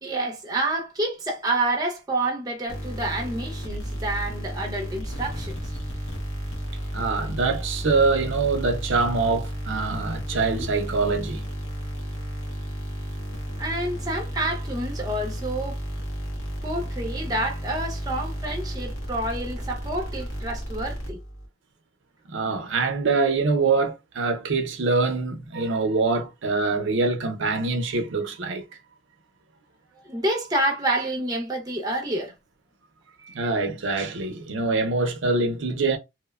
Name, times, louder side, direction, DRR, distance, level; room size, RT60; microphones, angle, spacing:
voice 1, 0.0-5.6 13.6-15.8 16.6-21.2 30.0-32.3, right 1 dB, 20° right, 0.5 m, -28 dB
sound 1, 2.7-21.5, equal, 90° left, 0.9 m, -33 dB
voice 2, 6.9-11.5 22.3-28.7 33.3-36.0, right 3 dB, 70° right, 0.5 m, -24 dB
2.9 x 2.0 x 2.2 m
head